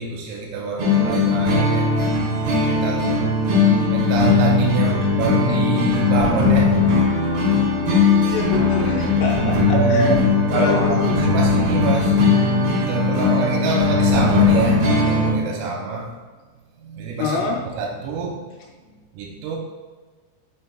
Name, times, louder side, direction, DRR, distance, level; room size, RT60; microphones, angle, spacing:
voice 1, 0.0-2.0 2.6-3.1 3.4-6.8 8.9-9.1 9.7-10.2 10.5-12.2 12.8-16.1 16.8-18.4 19.1-19.6, right 4 dB, 90° right, -1 dB, 3.3 m, -26 dB
sound 1, 0.8-15.3, left 3 dB, 60° right, 3.9 m, -18 dB
voice 2, 8.2-10.2 10.5-11.2 17.2-17.6, left 4 dB, 80° left, -1 dB, 3.1 m, -26 dB
8.0 x 5.5 x 2.3 m, 1.4 s
omnidirectional pair, 5.9 m